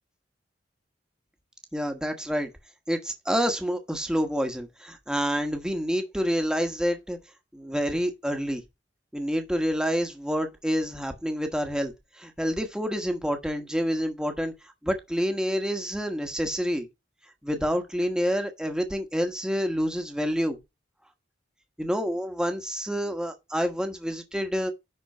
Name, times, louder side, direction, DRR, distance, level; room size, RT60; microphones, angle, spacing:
voice 1, 1.7-2.5 2.9-7.2 7.5-8.6 9.1-14.5 14.8-16.9 17.4-20.6 21.8-24.7, equal, 5° right, 1.3 m, -28 dB
10.5 x 4.2 x 5.4 m
head